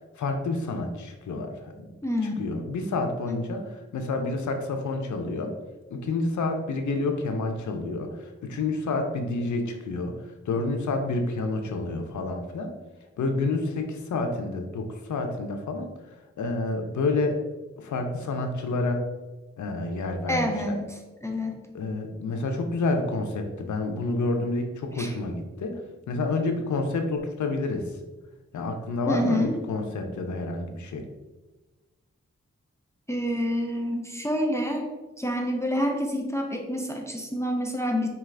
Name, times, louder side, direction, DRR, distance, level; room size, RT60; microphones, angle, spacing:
voice 1, 0.2-1.9 2.4-3.6 3.9-5.5 5.9-12.7 13.2-15.9 16.4-17.4 17.8-19.0 19.6-20.8 21.7-25.8 26.1-27.9 28.5-31.1, left 3 dB, 85° left, 5 dB, 0.5 m, -29 dB
voice 2, 2.0-2.5 3.3-3.4 20.3-20.8 21.2-21.6 25.0-25.1 29.1-29.5 33.1-34.8 35.2-38.1, equal, 10° left, 2 dB, 0.5 m, -27 dB
4.0 x 2.3 x 3.2 m, 1.2 s
cardioid pair, 55°, 29 cm